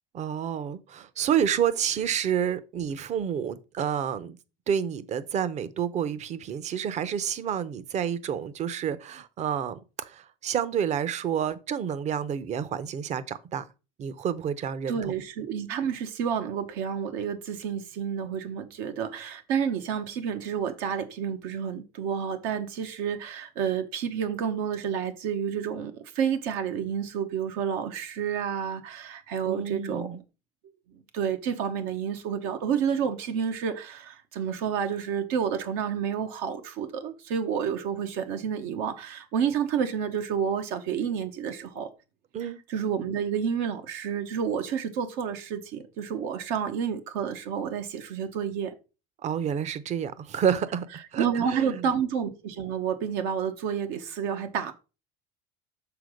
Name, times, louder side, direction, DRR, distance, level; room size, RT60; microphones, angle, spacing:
voice 1, 0.1-4.4 4.7-13.6 14.0-15.0 29.5-30.2 42.3-42.6 49.2-51.9, right 8 dB, 45° right, 0.8 m, -29 dB
voice 2, 14.9-30.1 31.1-41.9 42.4-48.7 51.2-54.7, right 7 dB, 80° right, 1.1 m, -30 dB
6.9 x 3.8 x 6.4 m
supercardioid pair, 115°, 17 cm